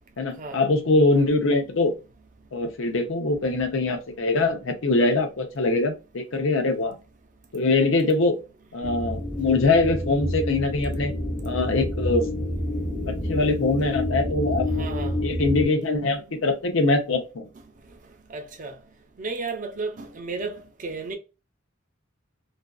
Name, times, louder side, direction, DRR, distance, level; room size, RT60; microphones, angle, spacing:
voice 1, 0.2-1.9 2.5-6.9 7.5-8.4 8.7-11.1 11.4-12.3 13.1-14.8 15.2-17.5, left 3 dB, 65° left, 0.6 m, -23 dB
sound 1, 8.8-15.7, left 1 dB, 10° left, 0.7 m, -28 dB
voice 2, 14.7-15.1 15.5-15.6 16.0-16.2 18.3-18.8 19.2-21.2, right 3 dB, 40° right, 0.5 m, -34 dB
2.5 x 2.3 x 2.3 m
head